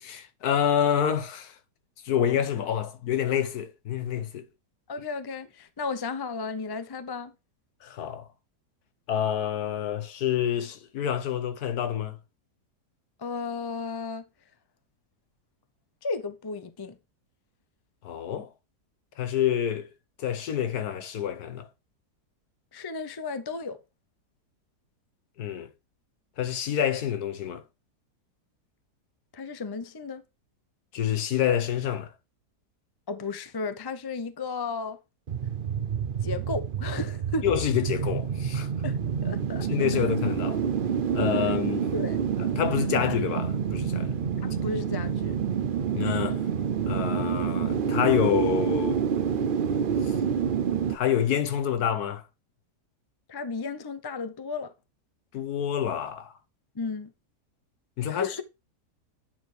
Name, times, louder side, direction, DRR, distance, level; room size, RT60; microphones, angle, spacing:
voice 1, 0.0-1.5 2.0-4.4 7.8-8.3 9.1-12.2 18.0-18.5 19.2-19.9 20.2-21.7 25.4-25.7 26.4-27.6 30.9-32.1 37.4-38.7 39.7-40.6 41.1-41.9 42.4-44.2 45.9-46.4 46.9-49.0 50.0-50.1 50.9-52.2 55.3-56.3 58.0-58.3, left 9 dB, 70° left, 1.4 m, -27 dB
voice 2, 4.9-7.3 13.2-14.2 16.0-17.0 22.7-23.8 29.3-30.2 33.1-35.0 36.2-37.4 38.8-39.7 41.9-42.2 44.4-45.4 53.3-54.7 56.7-57.1 58.1-58.4, left 4 dB, 30° left, 0.4 m, -34 dB
sound 1, 35.3-51.0, right 7 dB, 60° right, 0.5 m, -28 dB
9.4 x 4.6 x 4.8 m
omnidirectional pair, 1.7 m